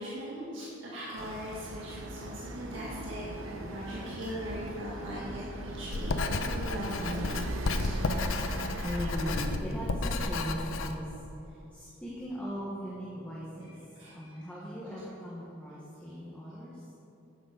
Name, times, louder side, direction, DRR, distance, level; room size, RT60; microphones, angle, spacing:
voice 1, 0.0-7.4 7.8-8.0 8.3-9.0 13.9-14.4, equal, 70° right, -6 dB, 1.8 m, -40 dB
sound 1, 1.2-9.6, right 1 dB, 90° right, 0.9 m, -39 dB
Writing, 5.9-10.9, left 3 dB, 85° left, 0.6 m, -32 dB
voice 2, 8.8-13.7 14.1-16.8, equal, 5° left, -7 dB, 1.3 m, -38 dB
10.5 x 7.2 x 5.1 m, 2.9 s
head